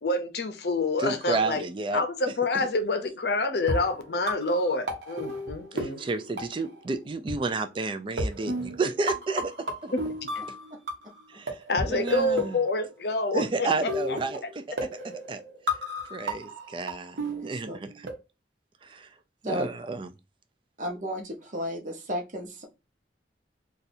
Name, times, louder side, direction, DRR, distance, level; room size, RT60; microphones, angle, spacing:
voice 1, 0.0-1.6 1.9-6.0 9.9-10.0 11.7-14.2, left 2 dB, 65° left, 0.6 m, -27 dB
voice 2, 1.0-2.0 2.5-2.7 5.7-9.5 9.8-9.9 11.3-11.6 11.9-12.6 13.3-14.4 15.0-15.4 16.1-17.9 18.8-19.1 19.4-20.1, right 3 dB, 30° right, 0.3 m, -31 dB
sound 1, 3.6-7.0 7.3-7.4 8.2-11.2 11.5-13.1 13.9-18.1, equal, 80° right, 0.9 m, -33 dB
voice 3, 17.2-17.8 19.4-19.7 20.8-22.6, equal, 45° right, 0.8 m, -34 dB
2.6 x 2.4 x 4.1 m
head